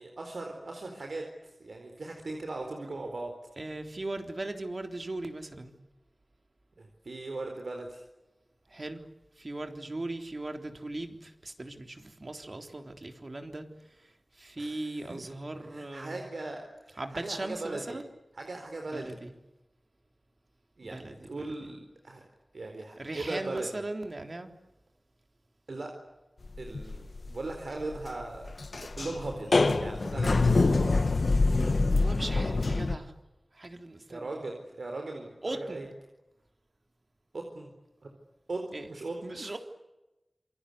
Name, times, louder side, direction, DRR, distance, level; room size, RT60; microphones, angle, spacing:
voice 1, 0.0-3.3 6.8-8.0 14.6-14.9 15.7-18.0 18.3-19.2 20.8-22.2 22.5-23.7 25.7-25.9 26.6-29.5 29.8-31.0 34.1-35.9 37.3-37.7 38.5-39.6, right 2 dB, 85° right, 4.3 m, -39 dB
voice 2, 3.6-5.7 8.7-9.0 9.4-13.7 14.0-16.2 17.0-18.1 18.9-19.3 20.8-21.7 23.0-24.5 31.9-33.1 33.5-34.4 35.4-35.9 38.7-38.9 39.2-39.6, right 2 dB, 50° right, 3.6 m, -39 dB
sound 1, 26.4-33.0, left 3 dB, 75° left, 2.0 m, -25 dB
27.5 x 24.0 x 8.4 m
wide cardioid pair, 65°, 0 cm